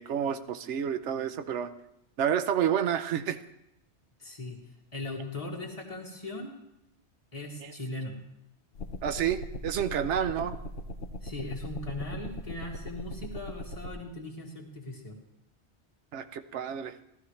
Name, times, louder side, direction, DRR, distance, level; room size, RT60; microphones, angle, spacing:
voice 1, 0.0-1.7 2.2-3.4 7.6-7.7 9.0-10.6 16.1-16.9, right 9 dB, 80° right, 10 dB, 1.0 m, -29 dB
voice 2, 4.2-4.6 4.9-6.6 7.3-8.2 10.4-10.5 11.2-15.2, left 2 dB, 30° left, -1 dB, 1.8 m, -39 dB
sound 1, 8.8-13.9, left 1 dB, 60° left, 0.9 m, -39 dB
15.0 x 12.5 x 3.2 m, 0.83 s
omnidirectional pair, 1.2 m